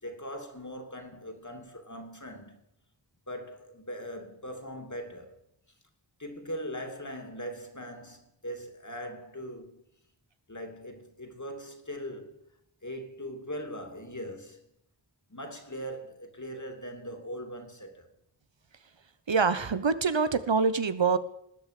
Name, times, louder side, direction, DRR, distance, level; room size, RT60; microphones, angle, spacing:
voice 1, 0.0-2.6 3.3-5.4 6.2-9.8 10.5-12.4 12.8-14.6 15.3-18.1, equal, 40° left, 3.0 m, -40 dB
voice 2, 19.3-21.2, right 5 dB, 90° right, 1.1 m, -25 dB
20.0 x 8.0 x 8.4 m
wide cardioid pair, 40°, 43 cm